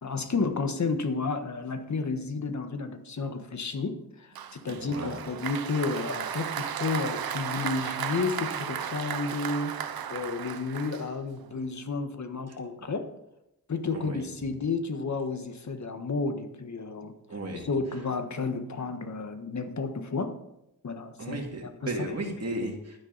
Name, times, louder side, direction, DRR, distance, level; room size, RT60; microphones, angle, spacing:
voice 1, 0.0-9.8 10.1-13.1 13.7-20.3 20.8-21.4 21.8-22.1, left 4 dB, 55° left, 8 dB, 1.4 m, -32 dB
Applause, 4.4-11.5, right 8 dB, 85° right, 0.8 m, -35 dB
voice 2, 4.7-5.2 12.5-12.6 13.9-14.2 17.3-17.7 21.2-23.0, right 1 dB, 45° right, 2 dB, 2.5 m, -35 dB
12.0 x 9.8 x 4.1 m, 0.84 s
cardioid pair, 80°, 35 cm